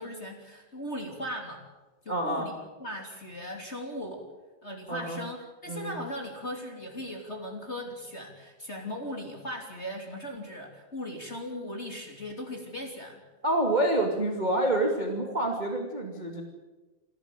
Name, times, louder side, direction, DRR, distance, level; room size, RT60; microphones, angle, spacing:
voice 1, 0.0-1.6 2.0-4.3 4.6-5.4 5.6-13.2, equal, 20° left, 1 dB, 2.6 m, -38 dB
voice 2, 2.1-2.5 4.9-5.2 5.7-5.9 13.4-16.4, right 1 dB, 15° right, 2 dB, 1.6 m, -27 dB
28.0 x 13.0 x 9.1 m, 1.2 s
omnidirectional pair, 4.8 m